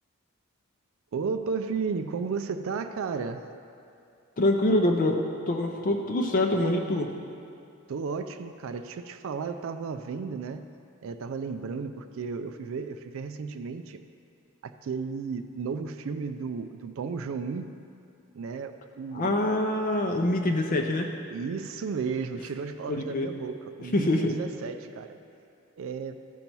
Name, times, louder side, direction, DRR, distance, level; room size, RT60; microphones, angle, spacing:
voice 1, 1.1-3.5 7.9-10.7 11.0-14.0 14.6-17.7 18.3-19.4 21.3-25.2 25.8-26.2, right 5 dB, 65° right, 9 dB, 0.4 m, -33 dB
voice 2, 4.4-7.1 19.1-21.1 22.9-23.3 23.8-24.3, left 1 dB, 40° left, 2 dB, 0.5 m, -25 dB
13.0 x 5.4 x 4.5 m, 2.6 s
head